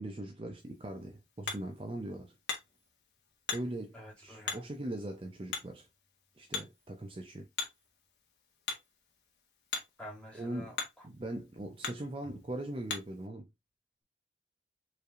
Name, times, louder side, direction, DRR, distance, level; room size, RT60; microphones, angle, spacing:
voice 1, 0.0-2.3 3.5-5.9 6.4-7.5 10.3-10.7 11.0-13.5, right 1 dB, 30° right, 0.5 m, -40 dB
Hammer, 0.6-13.3, left 5 dB, 70° left, 1.1 m, -44 dB
voice 2, 3.9-4.6 10.0-11.1, left 1 dB, 5° left, 2.0 m, -49 dB
4.6 x 3.3 x 2.5 m
head